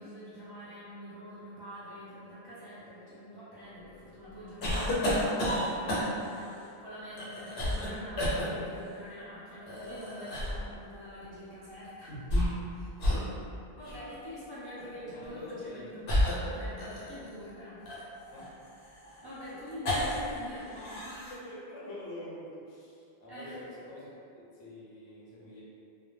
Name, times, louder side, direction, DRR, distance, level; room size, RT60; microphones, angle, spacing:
voice 1, 0.0-12.1 12.7-12.9 13.7-16.1 16.4-18.1 19.2-21.3 23.3-23.6, equal, 25° right, -12 dB, 0.7 m, -45 dB
sound 1, 4.6-6.4 7.2-7.9 8.2-8.5 9.7-10.7 12.1-12.7 13.0-13.3 13.8-14.0 15.1-15.3 16.1-17.3 17.9-20.4 20.6-21.3, left 1 dB, 85° left, 0.9 m, -31 dB
voice 2, 14.8-15.9 18.3-18.5 21.3-25.6, left 1 dB, 35° left, -8 dB, 0.5 m, -46 dB
2.1 x 2.1 x 3.1 m, 2.6 s
omnidirectional pair, 1.0 m